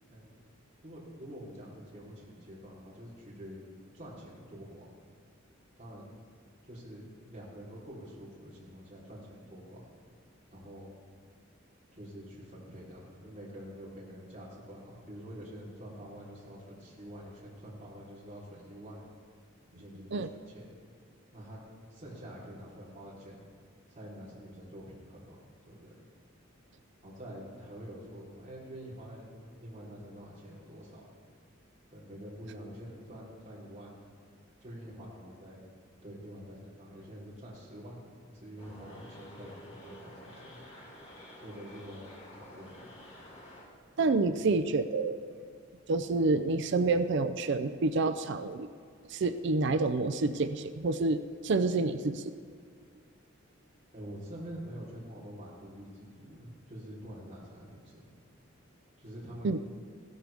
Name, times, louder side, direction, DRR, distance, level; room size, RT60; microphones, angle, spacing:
voice 1, 0.8-3.6 3.9-4.8 5.8-6.1 6.6-9.9 10.5-10.9 11.9-19.1 19.7-20.7 21.3-21.6 21.9-23.4 23.9-25.4 25.7-25.9 27.0-31.0 31.9-34.0 34.6-35.6 36.0-38.1 38.3-40.6 41.4-42.0 42.3-43.0 44.4-44.5 53.9-58.1 59.0-59.5, equal, 35° right, -7 dB, 3.7 m, -46 dB
sound 1, 38.6-43.7, left 1 dB, 30° left, 2.7 m, -50 dB
voice 2, 44.0-45.2 45.9-48.7 49.1-52.3 59.4-59.6, right 3 dB, 60° right, 11 dB, 0.5 m, -28 dB
16.0 x 13.0 x 3.5 m, 2.2 s
head